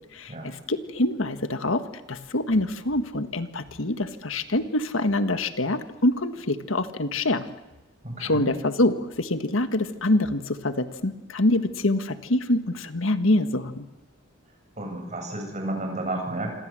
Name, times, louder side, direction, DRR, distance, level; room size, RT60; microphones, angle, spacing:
voice 1, 0.1-1.8 2.1-7.4 8.2-13.8, left 1 dB, 75° left, 9 dB, 1.6 m, -25 dB
voice 2, 8.0-8.5 14.8-16.5, right 1 dB, 35° right, 3 dB, 7.8 m, -31 dB
27.0 x 26.5 x 7.7 m, 1.1 s
head